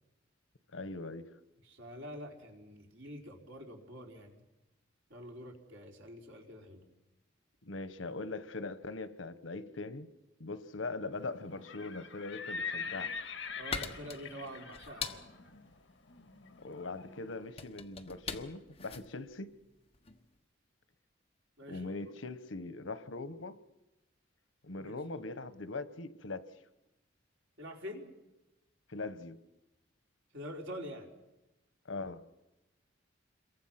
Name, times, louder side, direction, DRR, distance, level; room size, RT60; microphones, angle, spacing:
voice 1, 0.7-1.3 7.6-10.1 10.4-13.2 16.6-19.5 21.7-23.6 24.6-26.5 28.9-29.4 31.9-32.2, left 3 dB, 85° left, 1.2 m, -41 dB
voice 2, 1.6-4.4 5.1-6.8 13.6-15.3 21.6-21.9 24.7-24.9 27.6-28.1 30.3-31.1, equal, 75° right, 4.0 m, -46 dB
Livestock farm animals working animals, 11.5-17.4, left 5 dB, 65° left, 1.9 m, -43 dB
sound 1, 12.8-20.3, left 5 dB, 30° left, 1.3 m, -43 dB
28.0 x 23.0 x 5.9 m
head